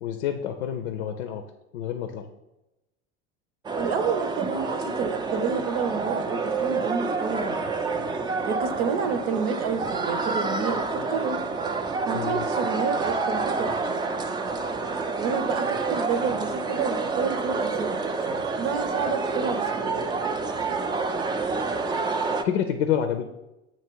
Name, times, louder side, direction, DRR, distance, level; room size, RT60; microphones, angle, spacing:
voice 1, 0.0-1.5 1.7-2.3 12.1-12.5 22.4-23.4, left 9 dB, 85° left, 7 dB, 0.5 m, -28 dB
sound 1, 3.6-22.4, right 4 dB, 15° right, 0.3 m, -28 dB
voice 2, 3.8-7.7 8.4-11.5 12.0-13.9 15.2-18.1 18.6-20.1, right 6 dB, 75° right, 10 dB, 0.8 m, -30 dB
7.5 x 2.9 x 4.5 m, 0.97 s
supercardioid pair, 95°, 33 cm